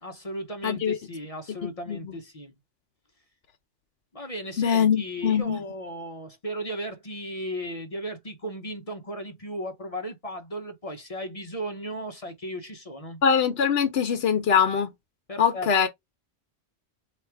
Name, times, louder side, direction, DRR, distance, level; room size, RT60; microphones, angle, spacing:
voice 1, 0.0-2.6 4.1-13.2 15.3-15.9, equal, 35° left, 0.8 m, -36 dB
voice 2, 0.6-1.0 1.6-2.1 4.6-5.6 13.2-14.9 15.4-15.9, left 7 dB, 65° left, 0.9 m, -23 dB
4.2 x 2.4 x 4.4 m
omnidirectional pair, 1.1 m